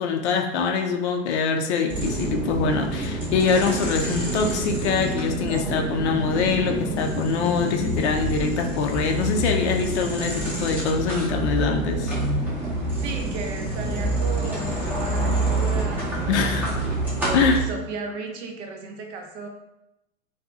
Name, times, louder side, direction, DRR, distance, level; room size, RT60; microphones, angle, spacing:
voice 1, 0.0-12.1 16.3-16.7 17.3-17.6, left 5 dB, 55° left, 4 dB, 0.5 m, -24 dB
sound 1, 1.9-17.6, right 1 dB, 5° right, 0.6 m, -27 dB
voice 2, 12.9-16.8 17.2-19.5, right 4 dB, 55° right, 3 dB, 0.6 m, -35 dB
2.7 x 2.3 x 2.3 m, 0.88 s
hypercardioid pair, 110°, 42 cm